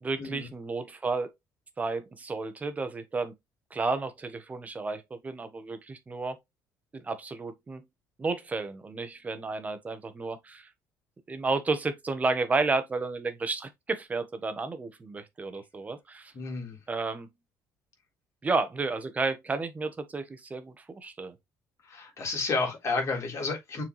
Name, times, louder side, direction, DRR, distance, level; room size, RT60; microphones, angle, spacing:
voice 1, 0.0-1.3 1.8-3.3 3.7-6.4 6.9-7.8 8.2-10.7 11.3-16.3 16.9-17.3 18.4-21.4, right 3 dB, 20° right, 1.2 m, -32 dB
voice 2, 16.3-16.8 21.9-23.8, left 3 dB, 40° left, 3.5 m, -31 dB
6.8 x 4.4 x 3.2 m
cardioid pair, 140°, 7 cm